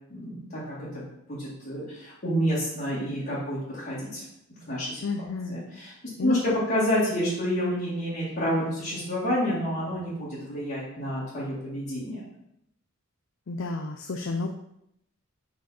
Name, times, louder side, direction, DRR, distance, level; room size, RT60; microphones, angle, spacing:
voice 1, 0.1-1.0 1.3-4.2 4.7-5.0 5.5-5.9 6.2-6.4 6.7-12.2, equal, 45° left, -11 dB, 2.1 m, -29 dB
voice 2, 5.0-5.6 6.2-6.4 13.5-14.5, left 4 dB, 60° left, 5 dB, 0.5 m, -30 dB
5.7 x 5.1 x 4.2 m, 0.77 s
head